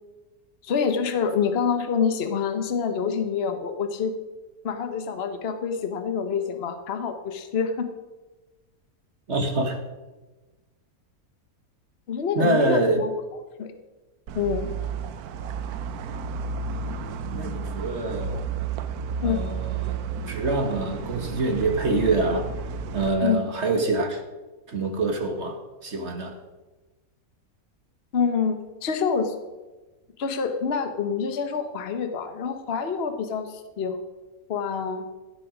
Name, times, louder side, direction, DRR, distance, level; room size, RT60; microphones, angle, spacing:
voice 1, 0.6-4.1 4.6-7.9 12.1-13.1 13.6-13.7 14.3-14.7 19.2-19.4 23.2-23.4 28.1-29.3 30.2-34.0 34.5-35.0, left 6 dB, 45° left, 7 dB, 1.2 m, -26 dB
voice 2, 9.3-9.8 12.3-13.0 17.3-18.4 19.2-20.0 20.3-22.5 22.9-24.2 24.7-26.4, right 2 dB, 50° right, 4 dB, 1.7 m, -25 dB
sound 1, 14.3-23.1, right 5 dB, 90° right, 1.2 m, -32 dB
16.0 x 7.7 x 5.0 m, 1.2 s
omnidirectional pair, 1.6 m